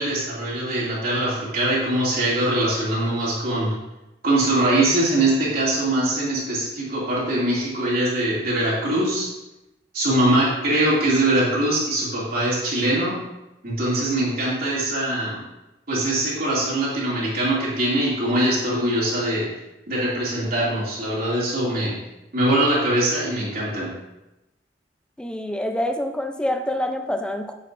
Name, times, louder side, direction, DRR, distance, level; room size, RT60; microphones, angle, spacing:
voice 1, 0.0-3.7 4.2-9.3 9.9-13.2 13.6-15.4 15.9-19.5 19.9-21.9 22.3-23.9, right 1 dB, 55° right, -7 dB, 2.6 m, -22 dB
voice 2, 25.2-27.5, left 1 dB, 5° left, 5 dB, 0.5 m, -26 dB
9.2 x 6.8 x 2.6 m, 0.97 s
head